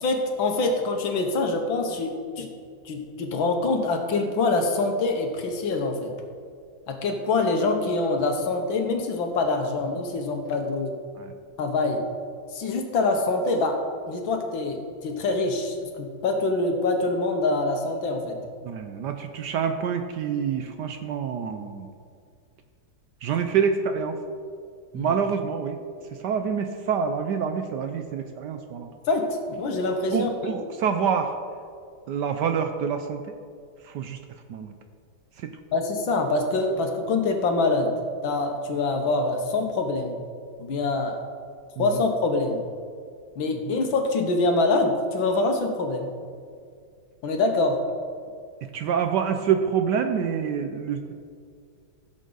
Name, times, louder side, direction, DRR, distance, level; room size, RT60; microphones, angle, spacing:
voice 1, 0.0-2.5 2.9-6.1 6.9-10.9 11.6-12.0 12.5-13.8 14.1-18.4 24.9-25.1 29.1-30.5 35.7-37.9 38.2-40.2 40.6-41.2 41.8-42.6 43.4-46.1 47.2-47.8, left 3 dB, 70° left, 4 dB, 1.9 m, -25 dB
voice 2, 18.6-21.9 23.2-24.2 24.9-25.8 26.2-28.9 30.1-31.3 32.1-33.2 33.8-34.2 34.5-34.7 35.4-35.5 41.8-41.9 48.7-51.1, right 7 dB, 70° right, 7 dB, 1.1 m, -26 dB
16.0 x 7.3 x 4.0 m, 2.2 s
omnidirectional pair, 2.2 m